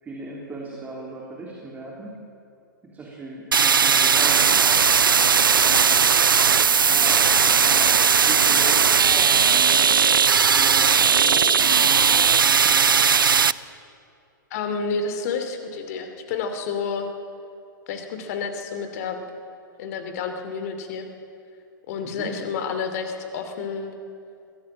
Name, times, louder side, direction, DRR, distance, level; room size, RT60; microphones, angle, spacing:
voice 1, 0.0-2.2 2.9-4.6 5.3-6.1 6.8-10.0 10.5-13.0 22.1-22.4, right 2 dB, 15° right, -3 dB, 3.1 m, -38 dB
sound 1, 3.5-13.5, right 6 dB, 75° right, 0.5 m, -18 dB
voice 2, 14.5-17.1 17.9-19.2 19.8-21.1 21.9-23.9, left 5 dB, 45° left, 7 dB, 2.6 m, -30 dB
22.5 x 16.5 x 7.6 m, 2.5 s
figure-of-eight pair, 110°, 11 cm